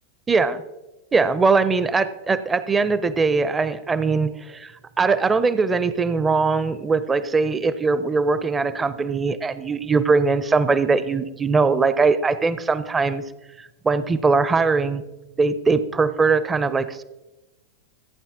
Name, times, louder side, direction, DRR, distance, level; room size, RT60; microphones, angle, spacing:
voice 1, 0.3-0.6 1.1-4.7 5.0-13.2 13.6-15.0 15.4-17.0, right 4 dB, 15° right, 14 dB, 0.5 m, -21 dB
14.5 x 8.8 x 3.6 m, 1.1 s
figure-of-eight pair, 90°, 0 cm